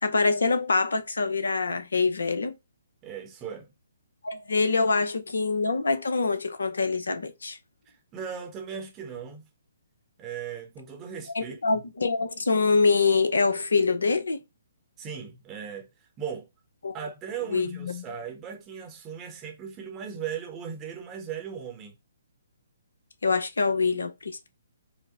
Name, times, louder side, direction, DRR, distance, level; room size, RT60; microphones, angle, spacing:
voice 1, 0.0-2.6 4.2-7.6 11.3-14.4 16.8-16.9 17.5-18.0 23.2-24.5, left 4 dB, 75° left, 0.8 m, -25 dB
voice 2, 3.0-3.7 7.9-9.5 10.2-11.8 15.0-15.9 16.2-16.5 16.9-21.9, right 7 dB, 25° right, 0.9 m, -37 dB
4.9 x 2.1 x 3.9 m
figure-of-eight pair, 130°, 0 cm